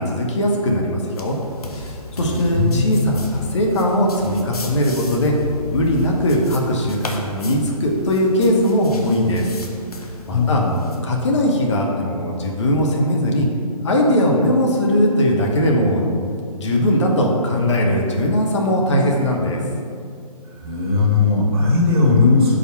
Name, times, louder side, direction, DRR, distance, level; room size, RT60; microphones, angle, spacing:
voice 1, 0.0-1.3 1.8-5.3 5.7-9.5 10.3-10.6 11.0-13.5 13.8-16.3 16.6-19.6, equal, 50° left, 0 dB, 1.1 m, -19 dB
sound 1, 1.1-11.0, left 1 dB, 70° left, 1.0 m, -34 dB
voice 2, 2.2-3.1 10.3-10.9 20.6-22.6, left 3 dB, 40° right, -3 dB, 1.7 m, -18 dB
5.0 x 4.9 x 5.8 m, 2.3 s
figure-of-eight pair, 135°, 20 cm